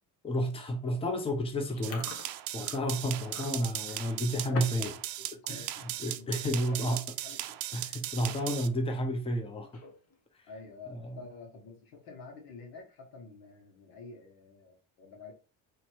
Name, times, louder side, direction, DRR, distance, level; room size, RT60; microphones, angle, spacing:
voice 1, 0.2-2.1 2.5-4.9 5.5-5.7 6.0-7.0 7.7-9.8 10.9-11.2, equal, 15° left, 0.8 m, -31 dB
Chewing mastication, 1.7-4.9 5.2-5.5 6.0-6.2 7.0-7.1 7.3-7.6 8.0-8.1 9.6-10.2, left 3 dB, 40° left, 1.1 m, -45 dB
sound 1, 1.8-8.7, right 14 dB, 75° right, 0.5 m, -38 dB
voice 2, 3.8-4.9 5.2-6.3 6.7-7.0 7.2-7.6 10.5-15.3, left 3 dB, 85° left, 1.6 m, -49 dB
3.1 x 2.9 x 4.5 m
cardioid pair, 100°, 35 cm